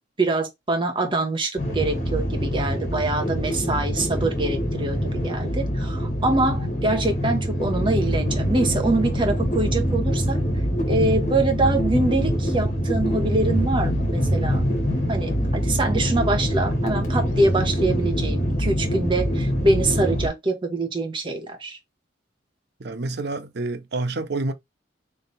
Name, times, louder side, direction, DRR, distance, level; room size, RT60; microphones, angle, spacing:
voice 1, 0.2-10.4 10.9-14.6 15.1-21.8, right 2 dB, 30° right, 1.1 m, -24 dB
sound 1, 1.6-20.3, equal, 45° left, 1.8 m, -24 dB
voice 2, 22.8-24.5, right 2 dB, 65° right, 0.7 m, -28 dB
3.4 x 3.2 x 4.0 m
head